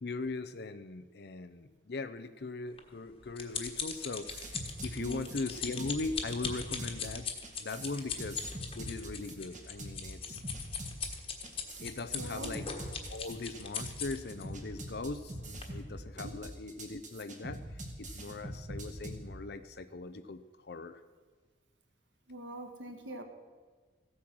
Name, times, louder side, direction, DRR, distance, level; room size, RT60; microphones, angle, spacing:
voice 1, 0.0-4.5 4.8-7.3 7.6-8.4 8.7-10.4 11.8-12.7 13.1-17.6 18.0-20.4 20.7-21.0, left 3 dB, 60° left, 11 dB, 0.6 m, -40 dB
sound 1, 2.8-14.4 15.1-15.3 15.6-15.7, left 6 dB, 30° left, 1.4 m, -39 dB
sound 2, 4.3-19.2, right 1 dB, 45° right, 2.0 m, -43 dB
voice 2, 5.0-5.3 12.2-12.6 16.2-16.3 22.3-23.2, right 1 dB, 85° right, 6 dB, 1.5 m, -43 dB
15.0 x 8.6 x 6.1 m, 1.4 s
head